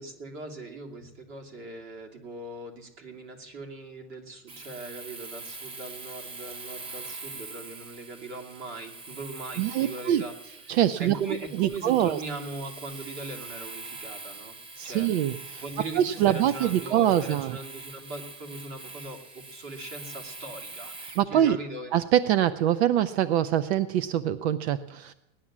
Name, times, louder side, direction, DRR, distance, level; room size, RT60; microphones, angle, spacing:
voice 1, 0.0-10.3 10.7-14.6 14.8-15.1 15.6-21.9, right 3 dB, 40° right, 3 dB, 2.8 m, -40 dB
Domestic sounds home sounds, 4.5-21.3, right 3 dB, 15° right, 0.8 m, -43 dB
voice 2, 9.6-10.2 10.7-11.2 11.6-12.2 14.8-15.6 16.0-17.6 21.2-21.6 21.9-25.1, right 11 dB, 75° right, 15 dB, 0.7 m, -24 dB
17.5 x 11.0 x 7.4 m, 0.99 s
supercardioid pair, 155°, 33 cm